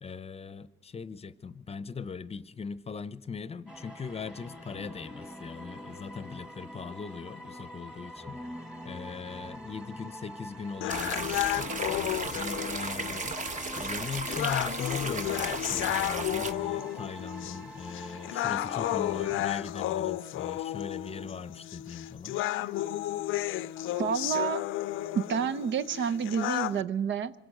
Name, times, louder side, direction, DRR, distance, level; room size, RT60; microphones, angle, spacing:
voice 1, 0.0-8.4 8.8-13.4 13.8-22.4, left 5 dB, 30° left, 0.7 m, -40 dB
sound 1, 3.7-19.4, equal, 5° right, 1.6 m, -45 dB
sound 2, 10.8-26.8, left 14 dB, 85° left, 0.5 m, -33 dB
sound 3, 10.9-16.5, right 3 dB, 40° right, 1.3 m, -35 dB
voice 2, 24.0-24.6 25.1-27.3, right 7 dB, 70° right, 0.7 m, -29 dB
26.0 x 17.5 x 6.6 m
cardioid pair, 90°, 20 cm